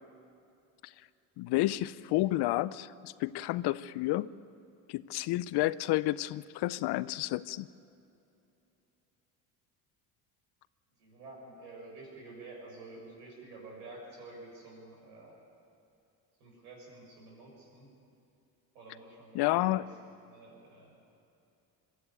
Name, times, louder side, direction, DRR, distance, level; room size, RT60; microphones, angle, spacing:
voice 1, 1.4-4.3 4.9-7.7 19.3-19.8, left 17 dB, 60° left, 17 dB, 0.7 m, -30 dB
voice 2, 11.0-15.3 16.4-17.9 18.7-19.8 20.2-20.9, right 2 dB, 80° right, -2 dB, 6.8 m, -49 dB
22.5 x 13.0 x 8.9 m, 2.7 s
hypercardioid pair, 65°, 46 cm